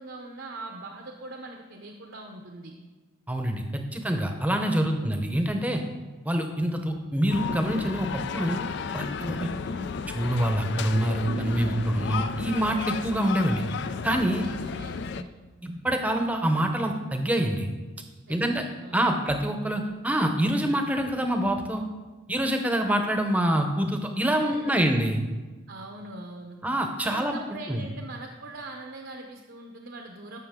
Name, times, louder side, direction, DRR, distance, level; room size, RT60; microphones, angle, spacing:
voice 1, 0.0-2.7 9.6-10.0 14.4-15.3 18.3-19.1 24.2-24.9 25.7-26.6 27.0-30.4, right 2 dB, 65° right, 2 dB, 0.7 m, -42 dB
voice 2, 3.3-5.8 6.2-8.7 8.9-9.5 10.1-13.6 14.0-14.4 15.6-17.7 18.3-18.6 18.9-21.8 22.3-25.2 26.6-27.4 27.7-27.8, right 1 dB, 10° right, 4 dB, 0.8 m, -26 dB
sound 1, 7.3-15.2, left 5 dB, 55° left, 0.3 m, -33 dB
Bass guitar, 11.3-14.9, right 3 dB, 40° right, 0.4 m, -41 dB
13.0 x 6.0 x 3.7 m, 1.3 s
head